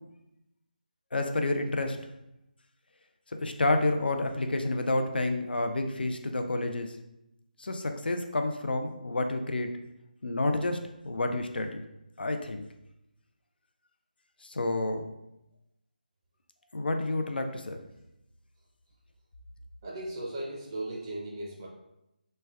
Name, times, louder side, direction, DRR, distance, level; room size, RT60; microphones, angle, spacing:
voice 1, 1.1-2.1 3.3-7.0 7.6-9.7 10.2-11.8 12.2-12.6 14.4-15.0 16.7-17.8, left 2 dB, 80° left, 6 dB, 0.4 m, -29 dB
voice 2, 19.8-21.7, right 1 dB, 25° right, -4 dB, 0.4 m, -37 dB
3.2 x 2.1 x 3.4 m, 0.87 s
figure-of-eight pair, 165°, 5 cm